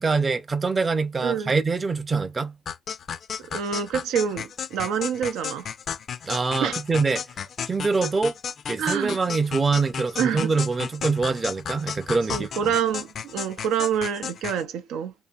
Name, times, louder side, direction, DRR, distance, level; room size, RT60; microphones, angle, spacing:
voice 1, 0.0-2.5 6.2-7.2 7.7-8.3 8.7-12.7, right 4 dB, 30° right, 0.5 m, -24 dB
sound 1, 2.7-14.6, left 7 dB, 60° left, 0.4 m, -34 dB
voice 2, 3.5-5.7 6.6-6.8 8.0-8.1 8.8-9.2 10.2-10.5 12.3-15.1, right 8 dB, 90° right, 0.4 m, -27 dB
2.6 x 2.6 x 2.3 m
cardioid pair, 90°, 0 cm